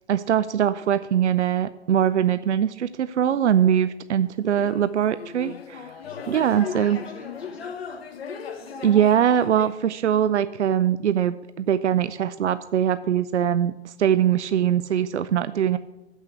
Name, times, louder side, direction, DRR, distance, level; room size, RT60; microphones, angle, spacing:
voice 1, 0.1-5.8 6.3-7.0 8.8-15.8, right 9 dB, 75° right, 14 dB, 0.5 m, -22 dB
sound 1, 4.4-9.8, left 6 dB, 60° left, 1.2 m, -37 dB
voice 2, 6.1-8.4, left 1 dB, 5° left, -5 dB, 0.3 m, -50 dB
7.6 x 6.2 x 7.8 m, 1.0 s
figure-of-eight pair, 125°, 34 cm